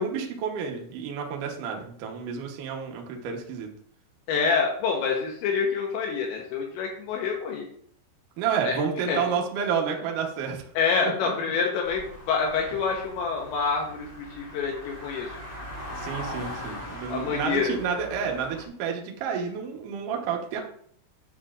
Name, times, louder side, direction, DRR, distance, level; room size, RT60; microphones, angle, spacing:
voice 1, 0.0-3.7 8.4-10.6 11.2-11.3 15.9-20.6, right 6 dB, 85° right, 1 dB, 1.8 m, -30 dB
voice 2, 4.3-7.7 8.6-8.8 9.1-9.3 10.8-15.3 17.1-17.8, left 5 dB, 80° left, 0 dB, 3.0 m, -27 dB
sound 1, 11.8-18.7, equal, 15° right, 2.7 m, -40 dB
9.7 x 7.3 x 2.5 m, 0.63 s
omnidirectional pair, 5.5 m